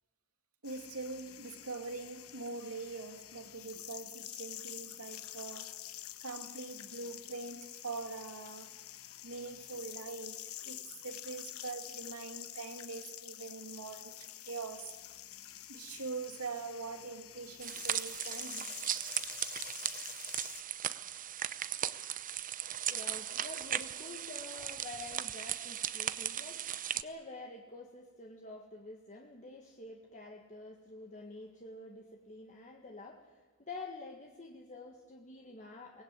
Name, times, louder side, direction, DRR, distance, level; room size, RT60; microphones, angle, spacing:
sound 1, 0.6-20.6, left 13 dB, 70° left, 1.1 m, -48 dB
voice 1, 0.6-5.8 6.2-8.7 9.2-14.9 15.7-18.7, right 4 dB, 85° right, 2.5 m, -43 dB
sound 2, 17.6-27.0, right 10 dB, 40° right, 0.7 m, -37 dB
voice 2, 22.9-36.0, left 2 dB, 35° left, 1.8 m, -48 dB
23.5 x 19.0 x 9.1 m
head